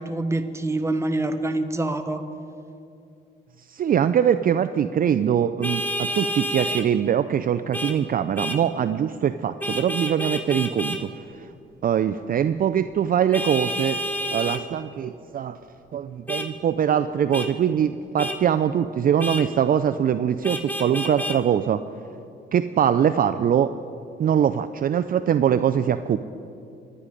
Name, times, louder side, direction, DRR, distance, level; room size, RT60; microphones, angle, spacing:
voice 1, 0.0-2.2, right 2 dB, 15° right, 8 dB, 1.2 m, -26 dB
voice 2, 3.7-11.1 11.8-14.0 14.3-15.6 15.9-21.8 22.5-23.7 24.2-26.2, right 9 dB, 45° right, 11 dB, 0.5 m, -22 dB
Vehicle horn car horn honking, 5.6-6.9 7.7-8.0 8.4-8.6 9.6-11.0 13.3-14.6 16.3-16.5 17.3-17.5 18.2-18.4 19.2-19.4 20.4-21.4, equal, 10° left, 1.3 m, -29 dB
25.0 x 9.9 x 5.1 m, 2.6 s
cardioid pair, 90°, 20 cm